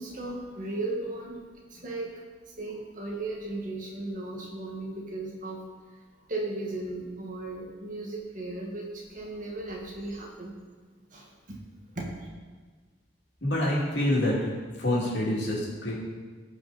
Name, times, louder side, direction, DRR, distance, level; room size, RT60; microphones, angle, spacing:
voice 1, 0.0-1.4 1.7-2.1 2.5-5.6 6.3-10.6 11.1-11.6 12.0-12.1, right 2 dB, 45° right, -1 dB, 1.8 m, -36 dB
voice 2, 13.4-14.5 14.8-15.9, left 1 dB, 65° left, -4 dB, 2.6 m, -26 dB
15.5 x 5.4 x 4.2 m, 1.5 s
head